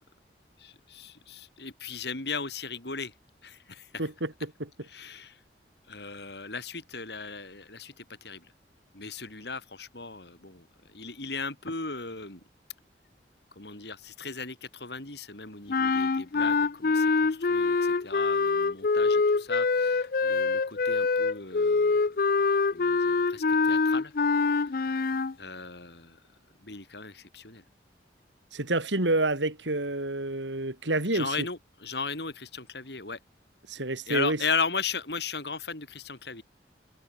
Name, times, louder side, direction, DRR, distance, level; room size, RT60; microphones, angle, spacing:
voice 1, 0.6-3.1 3.4-3.9 4.9-5.4 5.9-8.5 8.9-12.4 13.5-24.1 24.6-25.1 25.4-26.2 26.6-27.6 31.1-33.2 34.1-36.4, left 4 dB, 65° left, 4.2 m, -37 dB
voice 2, 4.0-4.7 28.5-31.4 33.7-34.4, right 2 dB, 85° right, 3.7 m, -28 dB
sound 1, 15.7-25.3, left 4 dB, 50° left, 0.5 m, -25 dB
head